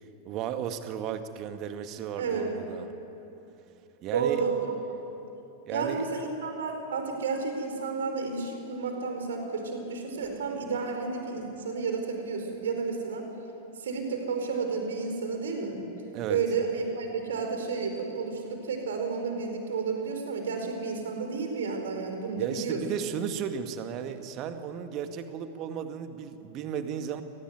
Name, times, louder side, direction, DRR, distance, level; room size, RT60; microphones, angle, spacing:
voice 1, 0.2-2.9 4.0-4.4 5.7-6.0 16.1-16.4 22.4-27.2, right 8 dB, 40° right, 8 dB, 1.9 m, -34 dB
voice 2, 2.2-2.6 4.1-4.7 5.7-13.3 13.8-15.8 16.3-22.8, right 5 dB, 65° right, 4 dB, 4.6 m, -31 dB
28.5 x 19.5 x 9.4 m, 2.9 s
figure-of-eight pair, 90°, 0 cm